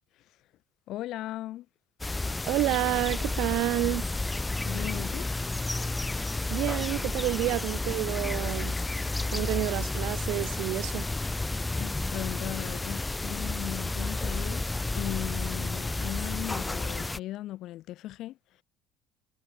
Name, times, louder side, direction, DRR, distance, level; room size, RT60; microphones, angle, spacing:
voice 1, 0.9-1.7 4.7-5.3 11.8-18.4, left 15 dB, 60° left, 2.7 m, -37 dB
sound 1, 2.0-17.2, left 2 dB, 10° left, 1.2 m, -31 dB
voice 2, 2.5-4.1 6.5-8.8 9.3-11.1, right 19 dB, 70° right, 1.5 m, -29 dB
supercardioid pair, 100°, 0 cm